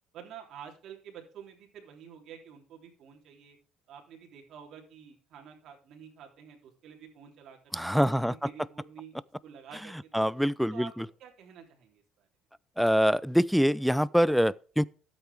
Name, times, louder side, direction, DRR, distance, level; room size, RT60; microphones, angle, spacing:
voice 1, 0.1-3.6 3.9-9.1 9.4-10.3 10.7-12.3, right 8 dB, 65° right, 3.3 m, -49 dB
voice 2, 7.7-8.3 10.1-11.0 12.8-14.9, equal, ahead, 0.4 m, -25 dB
12.5 x 8.4 x 3.5 m
cardioid pair, 100°, 0 cm